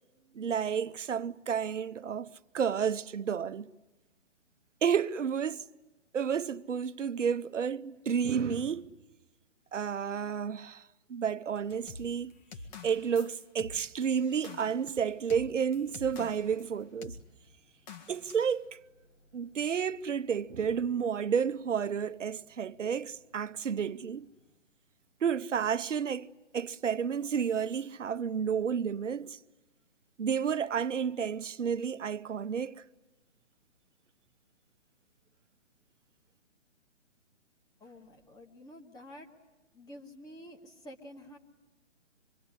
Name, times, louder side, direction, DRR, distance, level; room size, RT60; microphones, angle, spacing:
voice 1, 0.3-3.7 4.8-5.6 6.1-8.9 9.7-12.3 12.8-17.2 18.1-18.8 19.3-24.3 25.2-26.3 26.5-29.4 30.2-32.8, right 7 dB, 80° right, 0.9 m, -31 dB
Microwave oven, 10.1-10.6 10.9-13.2 13.6-24.6, left 2 dB, 90° left, 3.4 m, -62 dB
sound 1, 11.9-16.7 17.0-17.2 17.9-18.5, left 4 dB, 40° left, 2.0 m, -47 dB
voice 2, 37.8-39.3 39.7-41.4, equal, 10° left, 1.6 m, -49 dB
25.5 x 23.0 x 9.8 m
hypercardioid pair, 145°, 36 cm